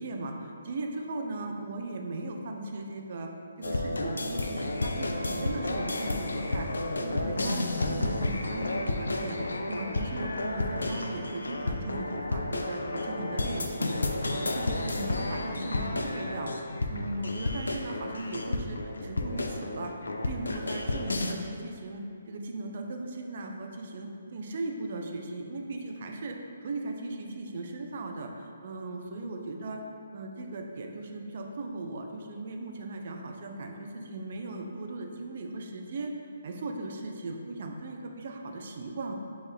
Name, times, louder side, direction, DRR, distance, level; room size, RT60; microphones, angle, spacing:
voice 1, 0.0-3.3 3.6-16.5 16.9-29.8 30.1-36.1 36.4-39.1, right 2 dB, 55° right, 3 dB, 0.5 m, -38 dB
sound 1, 3.6-21.3, left 2 dB, 90° left, 0.4 m, -31 dB
6.0 x 2.5 x 3.4 m, 2.5 s
hypercardioid pair, 145°, 0 cm